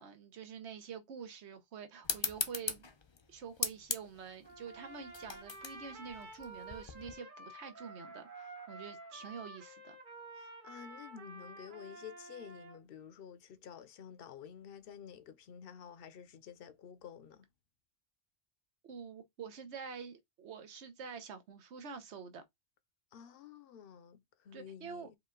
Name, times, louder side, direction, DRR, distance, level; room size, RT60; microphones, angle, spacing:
voice 1, 0.0-2.9 3.3-10.0 18.8-22.4 24.5-25.1, right 6 dB, 85° right, 1.1 m, -47 dB
sound 1, 2.0-7.1, left 5 dB, 35° left, 0.4 m, -40 dB
Trumpet, 4.4-12.8, right 2 dB, 50° right, 1.3 m, -50 dB
voice 2, 10.4-17.5 23.1-25.2, left 8 dB, 65° left, 0.7 m, -51 dB
4.9 x 2.3 x 3.6 m
omnidirectional pair, 1.1 m